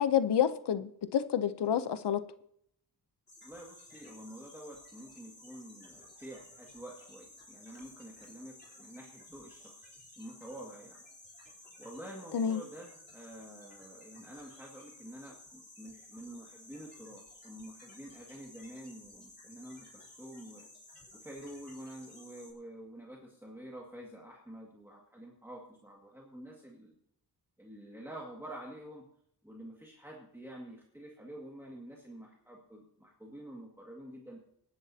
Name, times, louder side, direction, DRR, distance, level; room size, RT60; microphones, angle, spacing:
voice 1, 0.0-2.2 12.3-12.6, left 9 dB, 90° left, 0.8 m, -29 dB
sound 1, 3.3-22.5, left 2 dB, 25° left, 3.6 m, -55 dB
voice 2, 3.4-11.0 11.8-20.7 21.1-27.0 27.6-29.0 29.4-34.4, right 1 dB, 5° right, 2.0 m, -48 dB
22.5 x 11.5 x 2.8 m
wide cardioid pair, 175°, 40 cm